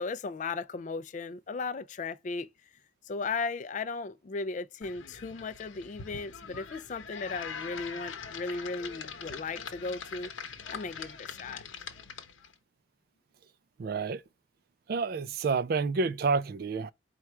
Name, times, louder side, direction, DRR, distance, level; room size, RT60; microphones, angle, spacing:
voice 1, 0.0-2.7 3.0-10.3 10.7-11.6, left 4 dB, 40° left, 0.3 m, -36 dB
sound 1, 4.8-12.5, left 6 dB, 80° left, 0.8 m, -43 dB
voice 2, 13.8-14.2 14.9-16.9, right 4 dB, 50° right, 0.3 m, -29 dB
4.6 x 2.3 x 4.3 m
head